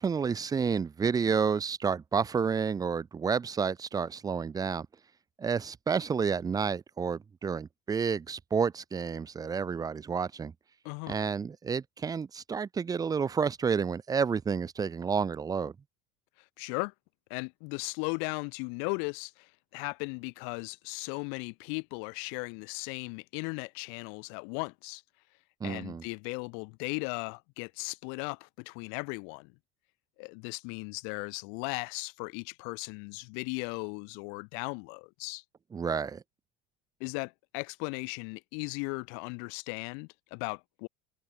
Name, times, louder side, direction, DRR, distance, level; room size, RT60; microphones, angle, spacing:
voice 1, 0.0-4.9 5.4-10.5 11.1-15.7 25.6-26.0 35.7-36.2, right 6 dB, 15° right, 0.9 m, -30 dB
voice 2, 10.8-11.2 16.6-16.9 17.3-25.0 25.6-29.5 30.2-35.4 37.0-40.9, left 40 dB or more, 70° left, 3.0 m, -37 dB
cardioid pair, 140°, 21 cm